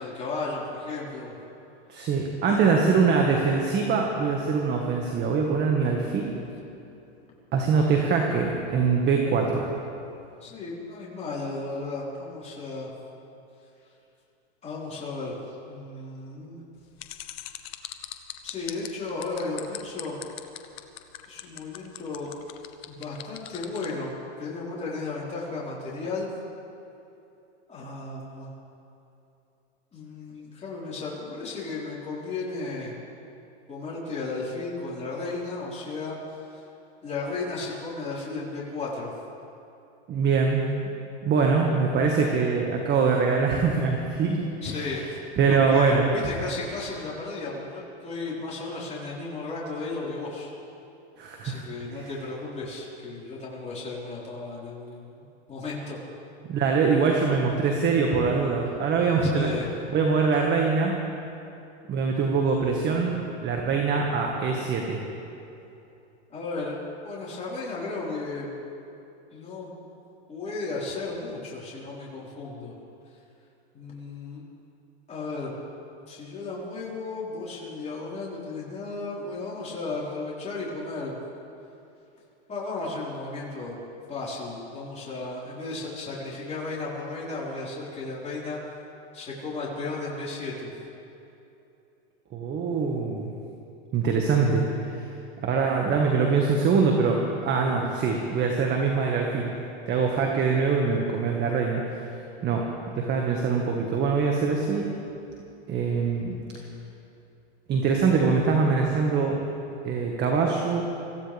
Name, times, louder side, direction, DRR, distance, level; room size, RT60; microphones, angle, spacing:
voice 1, 0.0-1.3 2.5-3.0 10.4-12.9 14.6-15.3 15.7-16.6 18.4-20.2 21.3-22.3 22.9-24.1 24.4-26.3 27.7-28.5 29.9-32.9 33.7-36.6 37.0-39.1 44.6-50.5 51.4-55.2 55.5-56.0 59.2-59.7 66.3-68.5 69.3-69.7 70.3-72.7 73.7-74.4 75.1-75.5 76.1-81.2 82.5-83.8 84.1-88.6 89.1-90.7, left 3 dB, 20° left, -6 dB, 4.7 m, -34 dB
voice 2, 1.9-6.3 7.5-9.7 40.1-40.6 41.2-44.9 45.4-46.1 51.2-51.6 51.9-52.1 56.4-59.5 59.9-60.9 61.9-63.2 63.4-65.0 92.3-93.3 93.9-95.1 95.4-99.5 99.9-102.1 102.4-102.7 102.9-104.9 105.7-106.4 107.7-109.4 109.8-110.8, right 5 dB, 30° right, 1 dB, 1.8 m, -23 dB
sound 1, 17.0-23.9, left 14 dB, 65° left, 1.2 m, -39 dB
25.0 x 15.5 x 3.5 m, 2.8 s
hypercardioid pair, 125°, 33 cm